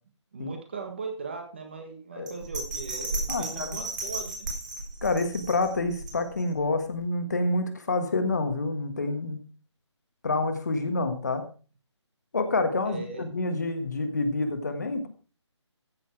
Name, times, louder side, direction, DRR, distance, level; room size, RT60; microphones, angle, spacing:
voice 1, 0.3-4.5 12.9-13.2, right 4 dB, 25° right, 5 dB, 1.5 m, -38 dB
Bell, 2.3-6.6 7.0-7.1, right 2 dB, 40° right, 4.0 m, -34 dB
voice 2, 3.3-3.8 5.0-9.4 10.2-11.4 12.3-15.1, left 2 dB, 35° left, 7 dB, 1.6 m, -28 dB
15.0 x 7.1 x 4.6 m, 0.36 s
hypercardioid pair, 180°, 16 cm